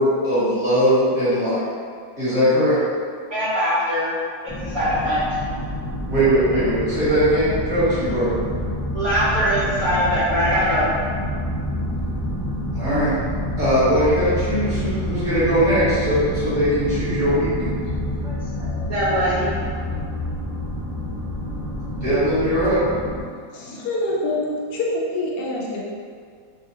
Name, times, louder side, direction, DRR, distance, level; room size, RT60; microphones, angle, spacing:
voice 1, 0.0-1.6 2.2-2.8 6.1-8.4 12.7-13.1 13.6-17.7 21.9-22.8, equal, 30° right, -14 dB, 1.4 m, -20 dB
voice 2, 3.3-4.1 4.4-5.2 8.9-10.8 18.2-19.5, equal, 55° right, -13 dB, 1.0 m, -22 dB
sound 1, 4.5-23.2, equal, 25° left, 0.5 m, -28 dB
voice 3, 23.5-25.8, left 1 dB, 70° left, -4 dB, 0.9 m, -25 dB
3.2 x 2.4 x 2.7 m, 2.1 s
omnidirectional pair, 2.2 m